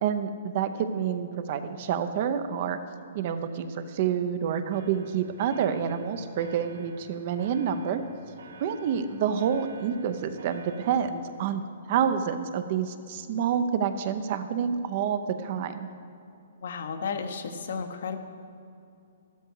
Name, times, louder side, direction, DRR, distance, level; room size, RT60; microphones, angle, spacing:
voice 1, 0.0-2.8 3.1-8.0 8.6-15.9, right 8 dB, 35° right, 10 dB, 0.7 m, -28 dB
sound 1, 4.7-11.1, right 5 dB, 80° right, 1.2 m, -50 dB
voice 2, 16.6-18.2, left 5 dB, 60° left, 7 dB, 1.1 m, -33 dB
13.0 x 12.5 x 4.7 m, 2.6 s
hypercardioid pair, 170°, 0 cm